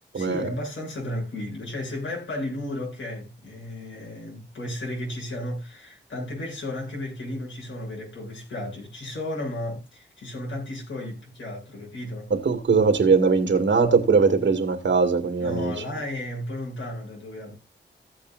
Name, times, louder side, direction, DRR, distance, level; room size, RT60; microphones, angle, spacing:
voice 1, 0.1-12.3 15.4-17.6, left 1 dB, 85° left, 7.4 m, -34 dB
voice 2, 12.3-15.7, right 5 dB, 70° right, 2.1 m, -20 dB
15.5 x 8.5 x 2.6 m
wide cardioid pair, 95°, 19 cm